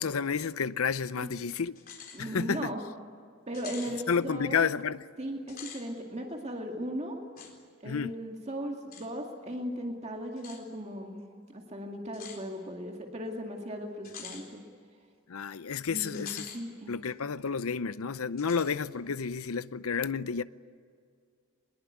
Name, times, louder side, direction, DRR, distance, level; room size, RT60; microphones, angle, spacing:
voice 1, 0.0-1.7 2.2-2.7 4.1-5.0 7.8-8.2 15.3-16.5 16.9-20.4, left 6 dB, 80° left, 0.7 m, -31 dB
sound 1, 1.8-2.2 2.6-2.7 3.5-4.0 5.4-5.8 7.4-7.5 8.9-9.1 10.4-10.6 12.1-12.4 14.0-14.4 16.1-16.6 17.0-17.1 18.4-18.7, left 7 dB, 40° left, 4.1 m, -45 dB
voice 2, 2.1-2.8 3.5-4.7 5.2-7.2 7.8-11.2 11.5-14.6 15.9-16.9, equal, 30° right, 2.2 m, -37 dB
23.5 x 21.0 x 9.5 m
head